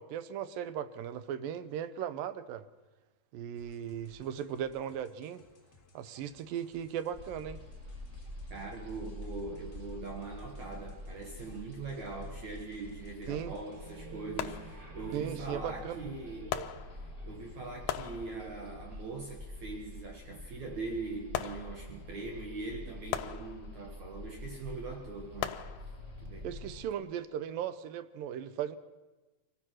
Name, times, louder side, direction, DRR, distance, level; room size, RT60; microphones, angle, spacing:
voice 1, 0.0-2.7 3.3-5.4 5.9-7.6 13.3-13.5 15.1-16.0 26.4-28.8, right 9 dB, 85° right, 12 dB, 2.6 m, -37 dB
sound 1, 3.5-14.0, left 4 dB, 35° left, 1.8 m, -62 dB
sound 2, 7.1-26.8, left 1 dB, 20° right, 0.9 m, -46 dB
voice 2, 8.5-16.6 17.2-25.6 26.2-26.5, right 3 dB, 65° right, 2 dB, 2.6 m, -42 dB
sound 3, 12.9-13.0 14.4-15.2 16.5-17.4 17.9-18.8 21.3-22.2 23.1-24.1 25.4-26.3 26.9-27.0, left 11 dB, 75° left, 2.3 m, -40 dB
24.5 x 17.0 x 6.3 m, 1.2 s
omnidirectional pair, 3.9 m